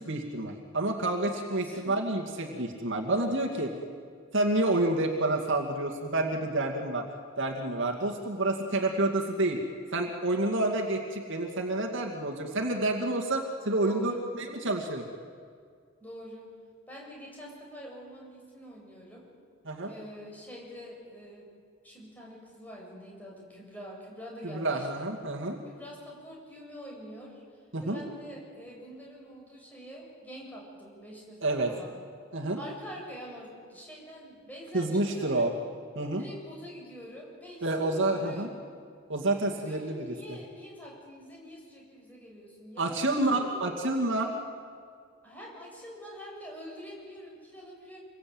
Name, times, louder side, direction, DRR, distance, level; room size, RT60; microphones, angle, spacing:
voice 1, 0.0-3.7 4.3-7.0 7.4-9.6 9.9-15.1 19.6-19.9 24.4-25.6 27.7-28.0 31.4-31.7 32.3-32.6 34.7-35.5 36.0-36.2 37.6-38.5 39.1-40.4 42.8-44.3, right 2 dB, 60° right, 1 dB, 2.3 m, -29 dB
voice 2, 1.3-2.0 3.4-3.7 13.8-14.2 16.0-16.5 16.9-19.2 19.8-21.5 21.8-25.1 25.6-27.4 27.8-32.0 32.5-35.5 36.2-38.7 39.6-43.7 45.2-48.0, equal, 10° left, -3 dB, 7.7 m, -45 dB
27.0 x 22.5 x 8.8 m, 2.1 s
head